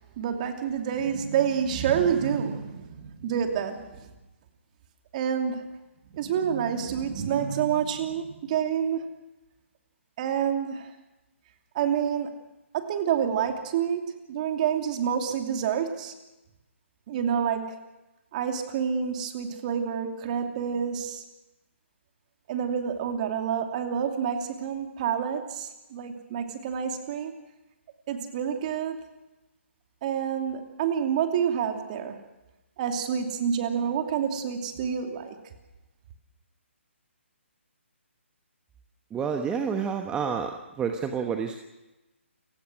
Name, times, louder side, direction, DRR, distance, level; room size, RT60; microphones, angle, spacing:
voice 1, 0.2-4.1 5.1-5.7 6.1-9.1 10.2-11.0 11.7-12.4 12.7-16.1 17.1-17.8 18.3-21.2 22.5-27.4 28.1-29.0 30.0-32.2 32.8-35.4, right 8 dB, 35° right, 5 dB, 2.8 m, -28 dB
voice 2, 39.1-41.6, right 6 dB, 10° right, 5 dB, 1.1 m, -29 dB
29.0 x 17.0 x 6.2 m, 1.0 s
figure-of-eight pair, 140°, 7 cm